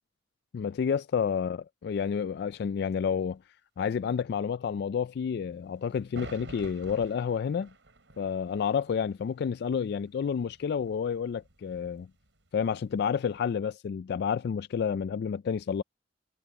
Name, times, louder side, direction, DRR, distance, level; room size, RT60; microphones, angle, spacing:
voice 1, 0.5-3.4 3.8-7.7 8.2-12.1 12.5-15.8, left 7 dB, 60° left, 0.3 m, -30 dB
sound 1, 6.0-13.5, right 2 dB, 85° right, 4.9 m, -51 dB
head